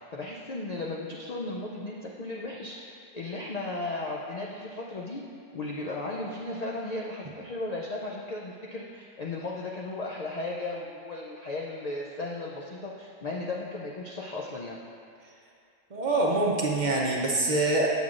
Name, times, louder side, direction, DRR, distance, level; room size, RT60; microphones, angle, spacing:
voice 1, 0.0-5.2 5.5-14.8, left 2 dB, 85° left, -3 dB, 0.3 m, -35 dB
voice 2, 15.9-17.9, right 2 dB, 45° right, -2 dB, 0.6 m, -25 dB
8.1 x 7.1 x 2.5 m, 2.4 s
omnidirectional pair, 1.3 m